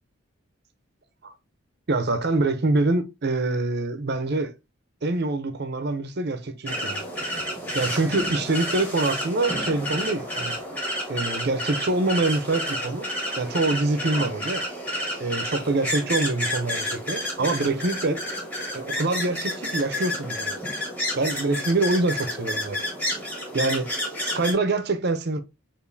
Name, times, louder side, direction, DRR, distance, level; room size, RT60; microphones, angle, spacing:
voice 1, 1.9-4.5 5.0-7.0 7.7-10.6 11.1-13.1 13.4-14.6 15.2-18.2 18.7-20.6 21.1-22.8 23.5-23.9 24.2-25.4, right 2 dB, 50° right, 0.6 m, -25 dB
sound 1, 6.7-24.5, equal, 10° left, 1.0 m, -30 dB
6.9 x 2.6 x 2.6 m
head